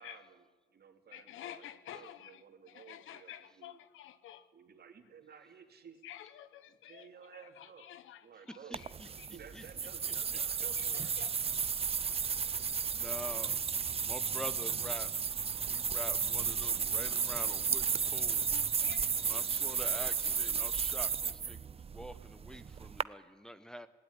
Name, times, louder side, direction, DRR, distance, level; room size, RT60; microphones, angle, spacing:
voice 1, 0.0-1.7 1.9-3.8 4.5-6.0 6.7-7.9 8.2-8.8 9.3-11.4, right 7 dB, 55° right, 6 dB, 2.7 m, -54 dB
voice 2, 1.1-2.3 2.7-4.4 6.0-7.1 7.9-8.2 11.2-11.3 18.5-19.4, left 11 dB, 80° left, 15 dB, 1.1 m, -49 dB
voice 3, 8.5-9.7 10.0-10.1 12.2-13.6 14.0-18.9 19.1-23.9, equal, 5° left, 10 dB, 1.0 m, -47 dB
sound 1, 8.7-23.0, right 6 dB, 30° right, 0.5 m, -33 dB
18.5 x 16.5 x 9.9 m, 1.3 s
cardioid pair, 90°, 20 cm